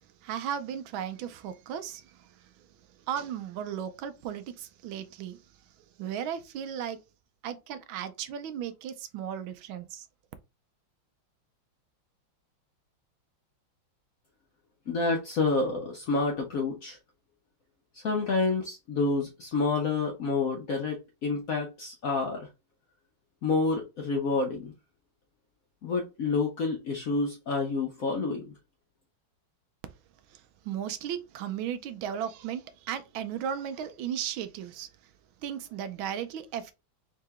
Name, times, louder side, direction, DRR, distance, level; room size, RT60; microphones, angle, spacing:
voice 1, 0.2-2.7 3.1-5.4 6.0-7.0 7.4-10.1 30.3-34.9 35.4-36.7, right 9 dB, 80° right, 1.3 m, -36 dB
voice 2, 14.9-17.0 17.9-22.5 23.4-24.7 25.8-28.5, left 3 dB, 70° left, 0.8 m, -28 dB
3.7 x 2.8 x 3.5 m
omnidirectional pair, 2.3 m